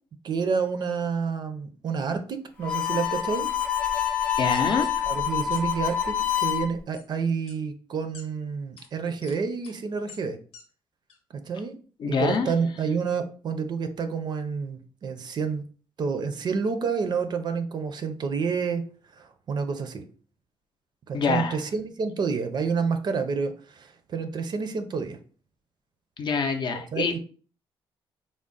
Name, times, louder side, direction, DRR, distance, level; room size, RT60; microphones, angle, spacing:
voice 1, 0.2-3.5 5.1-10.4 11.5-11.8 12.0-15.6 16.0-18.8 19.2-20.0 21.1-25.2 26.9-27.2, right 5 dB, 50° right, 8 dB, 0.5 m, -29 dB
Harmonica, 2.6-6.7, left 9 dB, 10° left, 0.6 m, -26 dB
voice 2, 4.4-5.1 12.0-12.5 21.1-21.6 26.2-27.1, left 5 dB, 55° left, 7 dB, 0.5 m, -26 dB
sound 1, 4.5-5.0 5.5-5.6 5.9-6.2 6.9-7.0 7.5-7.6 8.1-8.2 8.8-8.9 9.2-9.4 9.6-9.8 10.1-10.2 10.5-10.6 11.1-11.2, left 5 dB, 90° left, 0.8 m, -47 dB
3.5 x 2.0 x 3.8 m, 0.41 s
cardioid pair, 110°, 10 cm